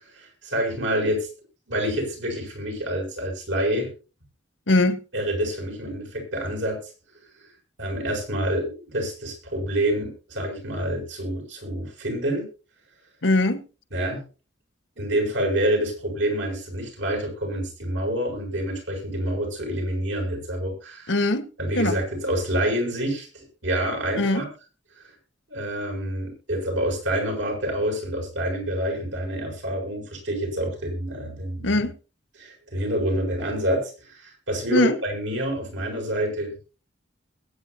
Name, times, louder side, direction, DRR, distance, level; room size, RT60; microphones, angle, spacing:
voice 1, 0.1-1.3 1.7-3.9 5.1-6.8 7.8-12.5 13.9-14.2 15.0-21.1 21.6-24.5 25.0-25.1 25.5-31.8 32.4-36.5, right 1 dB, 85° right, 6.9 m, -27 dB
voice 2, 4.7-5.0 13.2-13.6 21.1-21.5 21.7-22.0 24.2-24.4 31.6-31.9 34.7-34.9, left 2 dB, 85° left, 1.5 m, -21 dB
21.5 x 9.0 x 2.9 m
head